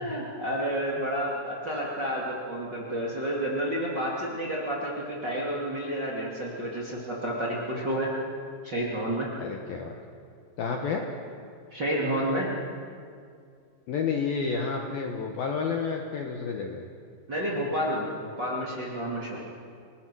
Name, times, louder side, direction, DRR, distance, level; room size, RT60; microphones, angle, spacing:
voice 1, 0.0-8.1 8.6-9.3 11.7-12.5 17.3-19.4, equal, 30° right, -4 dB, 2.3 m, -30 dB
voice 2, 9.4-10.0 10.6-11.0 13.9-16.8, left 5 dB, 65° left, 2 dB, 2.5 m, -30 dB
29.0 x 19.5 x 6.3 m, 2.2 s
omnidirectional pair, 5.7 m